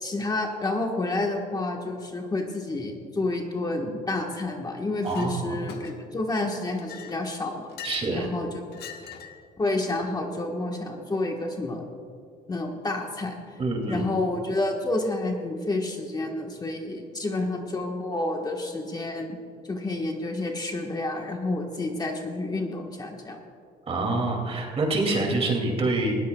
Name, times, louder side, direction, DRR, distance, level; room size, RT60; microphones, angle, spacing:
voice 1, 0.0-7.7 8.1-8.6 9.6-11.8 12.5-13.3 13.9-19.4 19.6-23.4, left 2 dB, 25° left, 1 dB, 1.4 m, -29 dB
Chink clink, 5.0-5.3 5.7-6.2 6.7-8.2 8.7-9.4, left 9 dB, 75° left, 1.4 m, -42 dB
voice 2, 5.0-5.6 7.8-8.3 13.6-14.0 23.9-26.2, right 2 dB, 35° right, 1 dB, 2.6 m, -26 dB
20.0 x 16.0 x 2.3 m, 2.3 s
cardioid pair, 110°, 17 cm